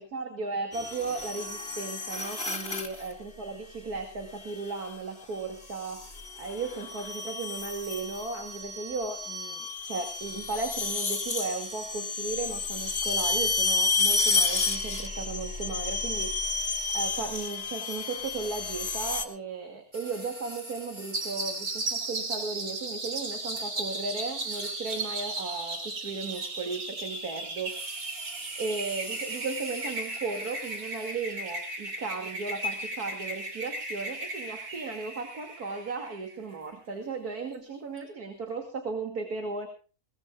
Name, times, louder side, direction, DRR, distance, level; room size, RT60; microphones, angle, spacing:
voice 1, 0.0-28.2 28.6-39.7, right 4 dB, 85° right, 4 dB, 3.0 m, -36 dB
sound 1, 0.7-3.1 4.5-4.9 5.7-19.3, left 4 dB, 40° left, 2.3 m, -31 dB
sound 2, 19.9-21.9 23.6-23.7 24.4-25.2 26.1-26.8 27.1-31.4 37.5-37.6 38.0-38.1, right 1 dB, 30° right, 5.0 m, -45 dB
sound 3, 21.1-36.3, right 2 dB, 65° right, 3.2 m, -36 dB
21.5 x 19.5 x 2.4 m, 0.37 s
omnidirectional pair, 1.6 m